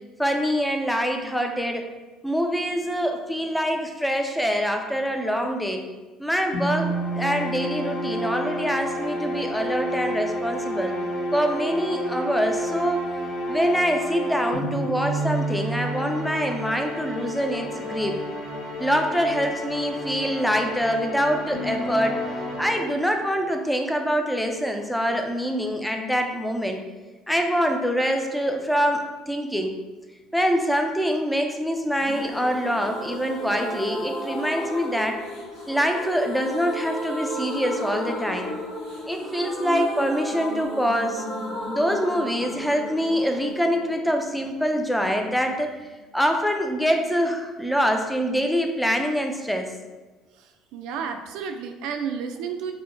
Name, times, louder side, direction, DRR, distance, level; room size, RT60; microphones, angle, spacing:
voice 1, 0.2-1.8 2.2-5.9 6.2-11.0 11.3-13.0 13.5-18.2 18.8-22.2 22.6-26.8 27.3-29.8 30.3-35.2 35.7-38.5 39.1-41.3 41.7-45.8 46.1-49.7, equal, 5° left, 4 dB, 0.4 m, -25 dB
sound 1, 6.5-23.3, equal, 85° left, 0.9 m, -30 dB
sound 2, 32.0-45.6 45.8-45.9 46.2-46.3, equal, 60° left, 1.1 m, -34 dB
voice 2, 50.4-52.7, right 6 dB, 75° right, 6 dB, 0.3 m, -32 dB
4.4 x 2.1 x 2.6 m, 1.2 s
supercardioid pair, 85°, 0 cm